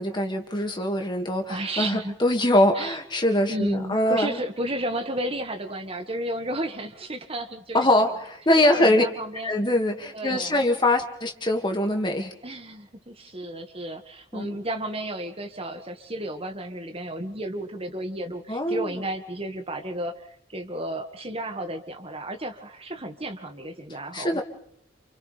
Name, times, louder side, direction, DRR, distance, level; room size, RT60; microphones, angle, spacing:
voice 1, 0.0-4.4 7.7-9.0 9.4-12.3 14.3-14.5 18.5-18.9 24.1-24.4, left 1 dB, 25° left, 4 dB, 2.2 m, -23 dB
voice 2, 1.5-2.2 2.7-3.0 3.5-8.1 8.6-9.5 10.1-10.6 12.4-24.4, right 1 dB, 30° right, 5 dB, 1.9 m, -33 dB
29.0 x 28.0 x 3.5 m, 0.68 s
head